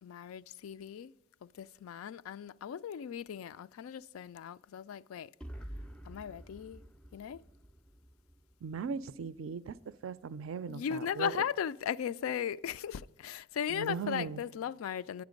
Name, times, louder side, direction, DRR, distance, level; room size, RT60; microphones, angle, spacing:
voice 1, 0.0-1.1 1.4-5.3 6.0-6.8 7.1-7.4 10.7-15.2, left 8 dB, 80° left, 0.3 m, -37 dB
sound 1, 5.4-9.3, equal, 5° left, 0.4 m, -48 dB
voice 2, 8.6-11.3 13.7-14.4, right 6 dB, 65° right, 0.4 m, -39 dB
10.5 x 9.6 x 5.1 m
head